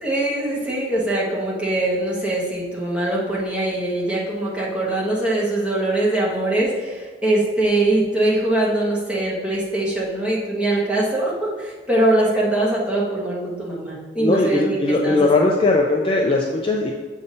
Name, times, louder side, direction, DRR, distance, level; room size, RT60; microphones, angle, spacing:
voice 1, 0.0-14.8 15.0-15.5, right 1 dB, 5° right, -6 dB, 1.2 m, -22 dB
voice 2, 14.2-16.9, left 2 dB, 30° left, -1 dB, 0.4 m, -19 dB
6.7 x 2.7 x 5.3 m, 1.4 s
head